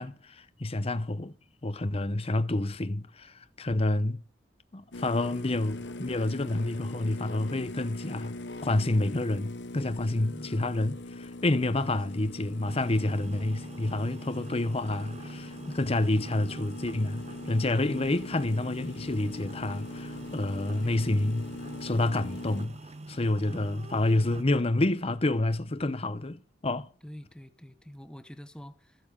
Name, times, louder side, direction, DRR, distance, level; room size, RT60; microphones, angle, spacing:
voice 1, 0.0-1.3 1.6-4.2 4.7-8.3 8.6-21.5 21.8-22.7 23.1-26.9, left 2 dB, 35° left, 0.8 m, -28 dB
Cappucino coffee machine, 4.9-22.7, left 2 dB, 70° left, 1.0 m, -41 dB
voice 2, 11.8-12.2 14.2-14.6 27.0-29.0, equal, 5° left, 1.0 m, -47 dB
sound 1, 12.6-24.4, right 2 dB, 35° right, 0.8 m, -45 dB
14.5 x 8.5 x 6.5 m
head